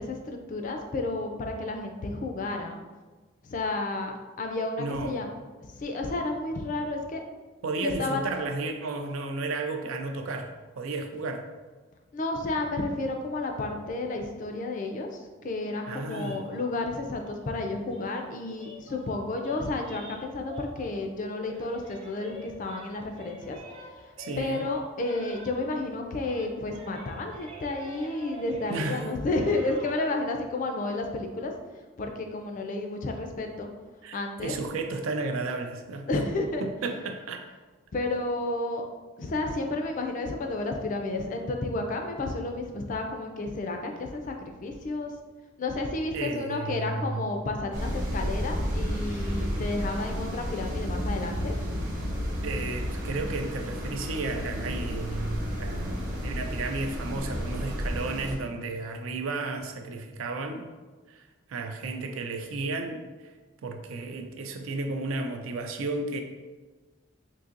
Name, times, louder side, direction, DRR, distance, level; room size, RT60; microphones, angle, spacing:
voice 1, 0.0-2.8 3.4-5.3 5.7-7.2 7.8-8.3 12.1-23.6 24.4-31.5 32.0-33.7 34.1-34.5 36.1-36.6 37.9-38.8 39.2-45.1 45.6-51.6, left 2 dB, 40° left, 4 dB, 0.4 m, -31 dB
voice 2, 4.8-5.2 7.6-11.4 15.9-16.4 24.2-24.6 28.7-29.0 34.0-36.1 36.6-37.4 46.1-47.2 52.4-60.7 61.1-63.3 63.6-66.2, right 3 dB, 85° right, 5 dB, 0.4 m, -33 dB
sound 1, 16.0-21.2 21.4-25.9 26.2-30.1, equal, 30° right, 0.5 m, -48 dB
sound 2, 47.7-58.3, equal, 45° right, 1.0 m, -32 dB
3.9 x 2.7 x 2.5 m, 1.3 s
head